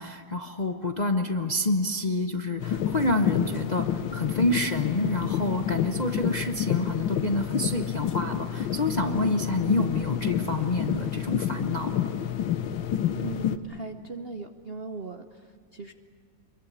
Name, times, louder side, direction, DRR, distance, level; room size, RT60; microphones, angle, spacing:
voice 1, 0.0-12.1, left 2 dB, 35° left, 5 dB, 0.7 m, -28 dB
sound 1, 2.6-13.6, left 9 dB, 85° left, 1.7 m, -29 dB
voice 2, 13.2-15.9, right 4 dB, 50° right, 7 dB, 0.7 m, -38 dB
25.0 x 22.0 x 8.4 m, 2.1 s
omnidirectional pair, 2.1 m